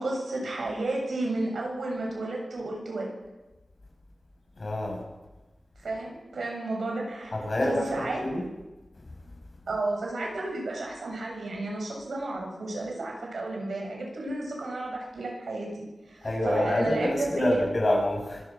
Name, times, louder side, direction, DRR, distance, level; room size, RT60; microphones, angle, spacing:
voice 1, 0.0-3.1 5.8-7.3 7.6-8.2 9.7-17.6, right 2 dB, 90° right, 0 dB, 7.5 m, -32 dB
voice 2, 4.6-5.0 7.3-7.8 8.2-8.4 16.2-18.4, left 1 dB, 45° left, 0 dB, 6.9 m, -27 dB
25.0 x 18.0 x 6.1 m, 1.1 s
wide cardioid pair, 70°, 0 cm